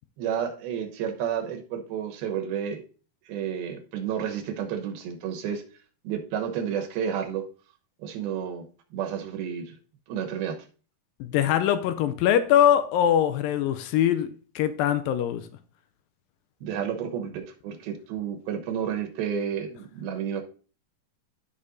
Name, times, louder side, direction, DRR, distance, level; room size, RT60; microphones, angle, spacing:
voice 1, 0.2-2.8 3.3-5.6 6.0-7.5 8.0-9.8 10.1-10.6 16.6-20.4, right 8 dB, 85° right, 3.0 m, -31 dB
voice 2, 11.2-15.5, left 10 dB, 80° left, 2.2 m, -22 dB
15.0 x 5.3 x 2.6 m
omnidirectional pair, 4.2 m